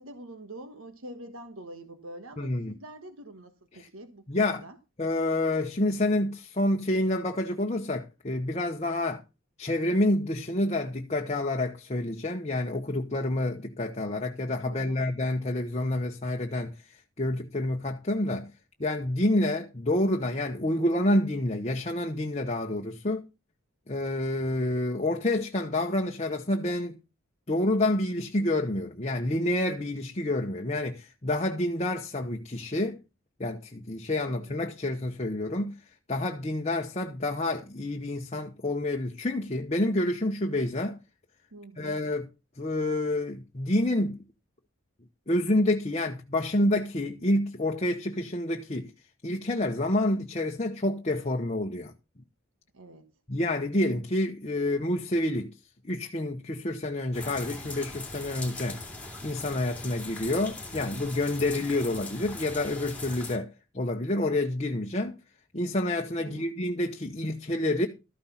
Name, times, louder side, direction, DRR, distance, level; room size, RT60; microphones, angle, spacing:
voice 1, 0.0-4.8 14.6-15.1 34.2-34.6 41.5-41.9 52.7-53.1 66.2-66.6, right 1 dB, 75° right, 1.4 m, -46 dB
voice 2, 2.4-2.7 4.3-4.6 5.0-9.2 9.6-16.7 17.2-18.5 18.8-23.2 23.9-27.0 27.5-33.0 33.4-35.7 36.1-41.0 41.8-42.3 42.6-44.2 45.3-48.9 49.2-51.9 53.3-55.5 55.8-58.8 59.2-63.5 63.7-65.2 65.5-67.9, left 1 dB, 30° left, 0.9 m, -28 dB
sound 1, 57.1-63.4, left 2 dB, 5° left, 2.6 m, -40 dB
13.5 x 6.0 x 5.7 m
head